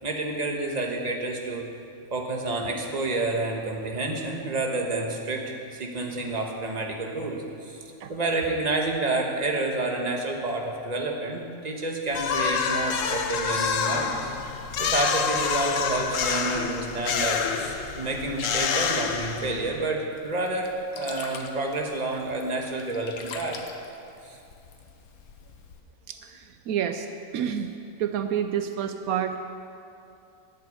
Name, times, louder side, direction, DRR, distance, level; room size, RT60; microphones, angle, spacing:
voice 1, 0.0-1.6 2.1-7.8 8.1-14.2 14.8-23.6 24.2-24.4, right 2 dB, 30° right, 1 dB, 1.4 m, -29 dB
sound 1, 12.1-19.8, left 6 dB, 65° left, 1.1 m, -27 dB
Sink (filling or washing), 20.1-25.8, left 5 dB, 85° left, 1.4 m, -45 dB
voice 2, 26.1-27.1 27.3-27.7 28.0-29.4, right 9 dB, 80° right, 8 dB, 1.1 m, -29 dB
10.5 x 8.5 x 8.4 m, 2.7 s
omnidirectional pair, 1.5 m